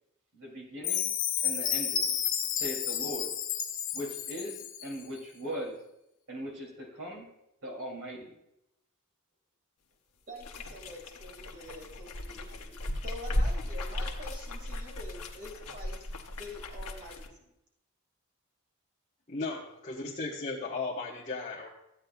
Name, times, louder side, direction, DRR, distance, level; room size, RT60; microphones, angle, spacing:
voice 1, 0.3-1.1 1.4-2.2 2.5-3.3 3.9-5.8 6.3-7.3 7.6-8.3, equal, 65° right, -1 dB, 3.0 m, -39 dB
Chime, 0.8-4.9, left 9 dB, 55° left, 0.9 m, -31 dB
voice 2, 10.3-16.1 16.4-17.2, left 1 dB, 35° right, -1 dB, 2.4 m, -46 dB
sound 1, 10.4-17.3, left 1 dB, 90° left, 1.1 m, -36 dB
voice 3, 19.3-21.7, left 3 dB, 30° left, -6 dB, 1.3 m, -36 dB
14.0 x 8.6 x 2.4 m, 0.86 s
head